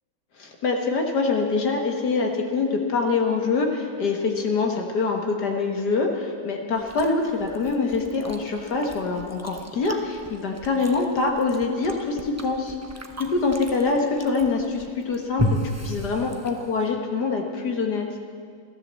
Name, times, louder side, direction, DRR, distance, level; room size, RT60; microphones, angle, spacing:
voice 1, 0.4-12.8 13.2-15.6 15.8-18.1, left 4 dB, 65° left, 2 dB, 2.0 m, -25 dB
Chewing mastication, 6.7-16.9, equal, 15° right, 0.6 m, -35 dB
14.0 x 13.5 x 7.5 m, 2.2 s
omnidirectional pair, 1.9 m